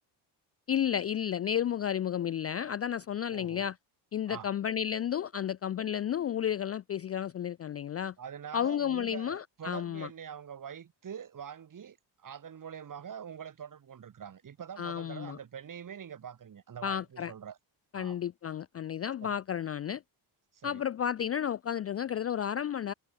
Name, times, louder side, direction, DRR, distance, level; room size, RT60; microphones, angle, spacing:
voice 1, 0.7-3.8 4.1-8.1 8.5-10.1 14.8-15.4 16.8-17.3 17.9-20.0 20.6-22.9, left 9 dB, 30° left, 0.4 m, -32 dB
voice 2, 3.3-3.6 4.3-4.5 8.2-12.0 12.2-17.6 17.9-18.2 19.2-19.4 20.5-20.8, right 8 dB, 40° right, 4.3 m, -44 dB
cardioid pair, 145°, 49 cm